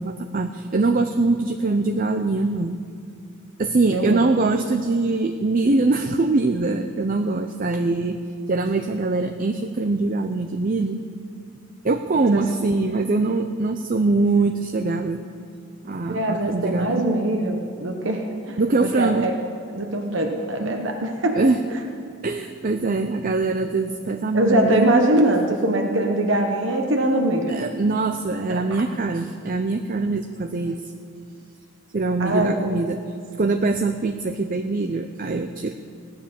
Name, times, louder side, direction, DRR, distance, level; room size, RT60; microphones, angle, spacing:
voice 1, 0.0-2.8 3.6-8.2 8.5-11.0 11.8-15.2 15.8-17.0 18.6-19.3 20.6-20.8 21.3-21.6 22.2-24.9 27.5-30.8 31.9-33.0 33.4-35.7, right 3 dB, 40° right, 7 dB, 0.5 m, -23 dB
voice 2, 3.9-4.2 12.3-12.4 16.1-19.3 19.7-21.4 24.3-27.6 28.5-28.8 32.2-32.6, right 1 dB, 60° right, 2 dB, 1.1 m, -22 dB
16.5 x 10.0 x 7.0 m, 2.3 s
head